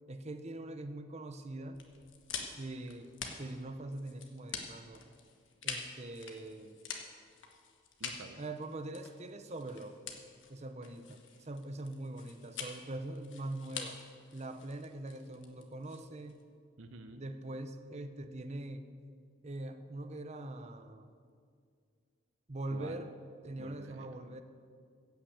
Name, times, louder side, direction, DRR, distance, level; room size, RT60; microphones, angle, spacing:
voice 1, 0.1-1.8 2.6-3.1 3.4-5.0 5.6-6.8 8.4-10.0 10.5-14.0 14.3-16.4 17.2-18.8 19.4-21.1 22.5-23.1 23.4-24.4, right 2 dB, 35° right, 9 dB, 0.7 m, -42 dB
sound 1, 1.7-16.4, left 6 dB, 70° left, 1.5 m, -46 dB
voice 2, 8.0-8.4 16.8-17.2 22.7-23.1 23.6-24.1, right 2 dB, 80° right, 7 dB, 0.8 m, -48 dB
15.5 x 5.9 x 8.6 m, 2.2 s
head